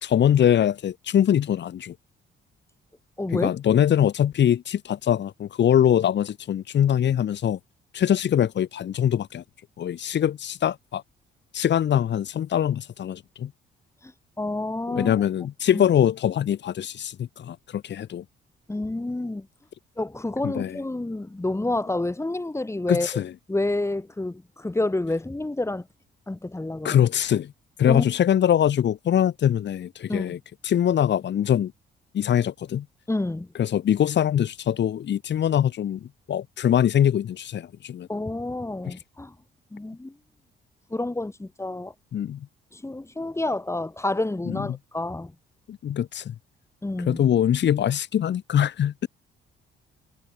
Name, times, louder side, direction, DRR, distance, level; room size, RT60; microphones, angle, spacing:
voice 1, 0.0-1.9 3.3-7.6 7.9-9.4 9.8-11.0 11.5-13.5 14.9-18.2 20.4-20.8 22.9-23.3 26.8-27.5 27.8-30.4 30.6-31.7 32.1-32.8 33.6-38.1 38.9-39.0 42.1-42.4 44.5-44.8 45.7-46.3 47.1-49.1, left 10 dB, 65° left, 3.2 m, -23 dB
voice 2, 3.2-3.5 14.0-14.1 14.4-15.2 15.7-15.8 18.7-19.5 20.0-23.1 23.5-25.9 26.3-27.0 27.9-28.0 30.1-30.4 33.1-33.5 38.1-39.3 39.7-40.2 40.9-41.9 42.7-45.3 46.8-47.2, left 2 dB, 15° left, 6.8 m, -29 dB
cardioid pair, 90°, 20 cm